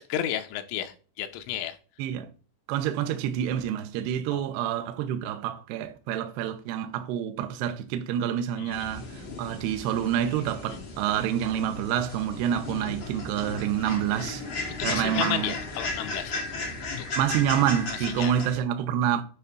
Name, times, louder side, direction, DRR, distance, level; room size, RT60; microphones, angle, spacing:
voice 1, 0.0-1.8 4.3-4.5 8.6-8.9 10.7-10.9 14.8-16.5 16.9-17.1 17.9-18.3, left 11 dB, 85° left, 3.3 m, -33 dB
voice 2, 2.0-2.3 2.7-14.5 14.8-15.5 17.2-19.2, right 10 dB, 80° right, 2.5 m, -28 dB
sound 1, 8.7-18.6, left 3 dB, 40° left, 1.8 m, -35 dB
9.4 x 3.3 x 5.4 m
omnidirectional pair, 5.5 m